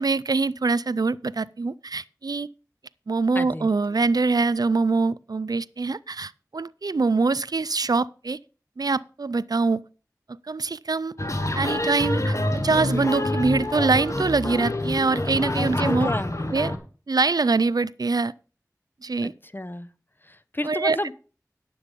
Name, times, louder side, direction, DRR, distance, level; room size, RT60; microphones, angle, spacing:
voice 1, 0.0-2.5 3.1-8.4 8.8-9.8 10.5-11.1 11.5-16.1 16.5-16.7 17.1-18.3 19.0-19.3 20.6-21.0, right 3 dB, 75° right, 0.4 m, -24 dB
voice 2, 3.3-3.7 15.5-16.3 19.2-19.9 20.3-21.1, left 1 dB, 30° left, 0.8 m, -31 dB
sound 1, 11.2-16.8, left 1 dB, 50° left, 1.5 m, -26 dB
9.8 x 7.8 x 5.2 m
wide cardioid pair, 45°, 7 cm